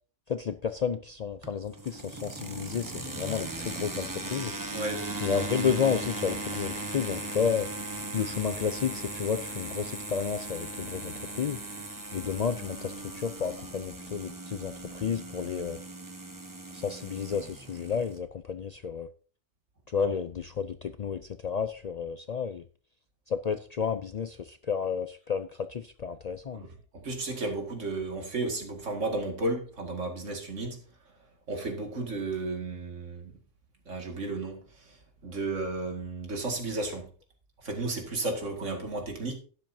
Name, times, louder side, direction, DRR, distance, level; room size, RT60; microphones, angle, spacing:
voice 1, 0.3-4.5 5.2-7.7 8.1-11.6 12.1-15.8 16.7-19.1 19.9-22.7 23.3-26.7, left 7 dB, 60° left, 0.4 m, -31 dB
sound 1, 1.4-18.2, right 2 dB, 15° right, 1.1 m, -38 dB
voice 2, 4.7-5.1 20.0-20.1 26.5-26.7 26.9-30.8 31.5-33.3 33.9-35.0 35.2-37.1 37.6-39.4, right 2 dB, 85° right, 2.4 m, -33 dB
12.0 x 10.5 x 2.7 m
omnidirectional pair, 1.2 m